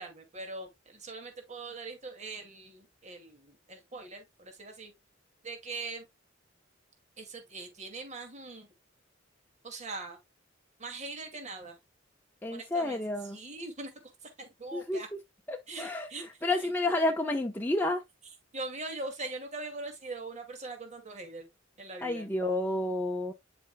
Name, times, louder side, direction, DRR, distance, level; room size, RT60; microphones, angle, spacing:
voice 1, 0.0-4.9 5.4-6.1 7.2-8.7 9.6-10.2 10.8-11.8 12.5-13.0 13.3-13.9 14.4-15.1 15.7-16.3 18.5-21.5 21.8-22.3, right 3 dB, 40° right, 2.2 m, -41 dB
voice 2, 12.4-13.4 14.7-15.0 15.5-18.0 22.0-23.3, left 2 dB, 10° left, 0.8 m, -30 dB
9.9 x 5.3 x 2.2 m
head